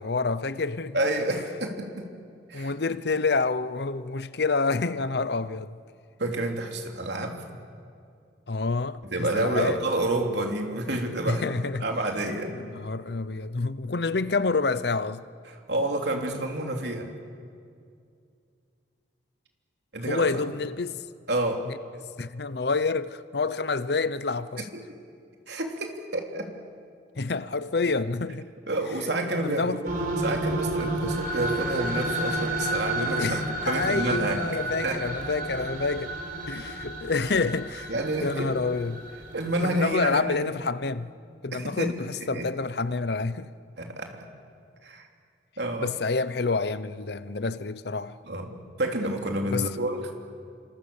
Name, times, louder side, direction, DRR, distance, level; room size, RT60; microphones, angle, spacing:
voice 1, 0.0-1.0 2.5-5.8 8.5-9.8 11.3-11.8 12.5-15.2 20.1-21.1 21.7-21.8 22.2-24.7 27.2-28.5 29.4-29.8 33.2-36.1 36.5-37.9 38.2-39.0 39.6-41.1 41.4-43.5 45.8-48.2 49.5-49.7, left 4 dB, 60° left, 0.7 m, -28 dB
voice 2, 0.9-2.0 2.5-2.7 6.2-7.4 9.0-11.4 11.8-12.5 15.5-17.1 19.9-20.3 21.3-21.6 24.6-24.7 25.5-26.5 28.7-29.9 30.2-34.4 34.8-35.0 37.9-38.6 39.3-40.5 41.5-41.9 42.3-42.5 43.8-44.2 44.8-45.1 45.6-45.9 48.3-50.1, right 1 dB, 65° right, 3.4 m, -29 dB
sound 1, 29.8-40.0, right 1 dB, 50° right, 4.3 m, -31 dB
28.0 x 26.0 x 7.2 m
head